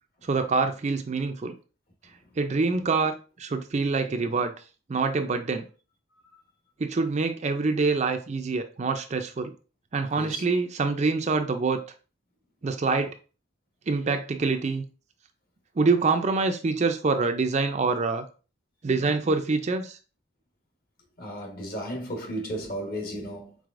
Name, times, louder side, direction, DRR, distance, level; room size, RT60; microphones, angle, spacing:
voice 1, 0.2-1.5 2.4-4.5 4.9-5.6 6.8-9.5 9.9-11.8 12.6-13.1 13.9-14.8 15.8-18.2 18.8-20.0, right 4 dB, 35° right, 0.4 m, -25 dB
voice 2, 10.1-10.4 21.2-23.6, equal, 45° left, 1.2 m, -34 dB
4.7 x 4.0 x 2.5 m
head